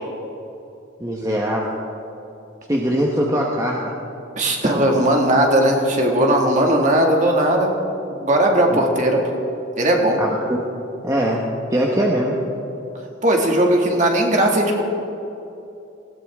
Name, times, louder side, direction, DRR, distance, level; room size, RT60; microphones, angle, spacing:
voice 1, 1.0-1.7 2.7-3.9 8.7-8.8 10.2-10.6 11.0-11.4 11.7-12.4, equal, 15° right, -2 dB, 1.2 m, -21 dB
voice 2, 4.4-7.7 8.2-9.2 9.8-10.2 13.2-14.8, right 1 dB, 40° right, 0 dB, 2.2 m, -17 dB
20.0 x 17.0 x 3.7 m, 2.8 s
head